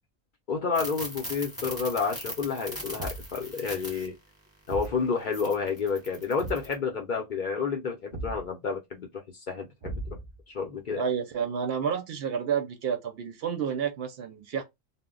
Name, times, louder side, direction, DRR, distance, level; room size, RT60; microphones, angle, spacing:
voice 1, 0.5-4.1 4.7-10.2 10.5-11.0, left 5 dB, 55° left, 0.6 m, -30 dB
sound 1, 0.7-4.1 4.7-4.9 5.3-6.7, equal, 5° right, 1.0 m, -39 dB
Thump thud, 3.0-3.4 4.7-5.0 6.4-6.7 8.1-8.5 9.8-10.4, right 2 dB, 45° right, 0.3 m, -37 dB
voice 2, 11.0-14.6, right 7 dB, 65° right, 0.7 m, -30 dB
2.1 x 2.0 x 3.6 m
omnidirectional pair, 1.2 m